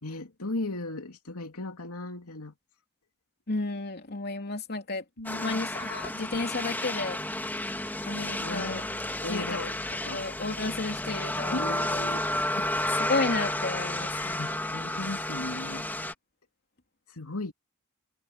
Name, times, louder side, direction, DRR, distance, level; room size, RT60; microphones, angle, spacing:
voice 1, 0.0-2.5 5.2-5.7 8.4-9.8 10.0-10.2 11.5-12.2 12.5-12.7 14.4-15.9 17.1-17.5, left 2 dB, 90° left, 2.8 m, -37 dB
voice 2, 3.5-5.0 5.3-7.2 8.1-8.8 9.3-9.6 10.0-11.7 13.0-14.4, left 3 dB, 50° left, 3.0 m, -32 dB
sound 1, 5.2-16.1, left 1 dB, 10° left, 2.0 m, -32 dB
head